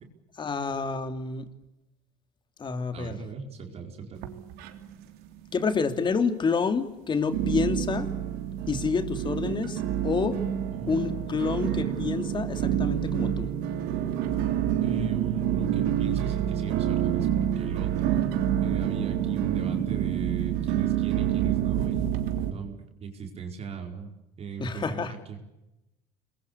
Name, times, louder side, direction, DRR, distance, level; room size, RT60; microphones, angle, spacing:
voice 1, 0.4-1.5 2.6-3.2 5.5-8.1 8.7-10.3 10.9-13.5 24.6-25.1, left 5 dB, 30° left, 9 dB, 2.9 m, -28 dB
voice 2, 2.9-4.3 10.8-11.1 14.8-18.3 18.6-22.2 22.5-24.1 24.4-25.4, right 5 dB, 40° right, 3 dB, 4.9 m, -38 dB
sound 1, 4.1-5.1 5.4-6.0 6.5-6.6 7.3-22.5, right 10 dB, 80° right, 3.4 m, -28 dB
27.5 x 22.0 x 8.5 m, 0.94 s
cardioid pair, 125°, 16 cm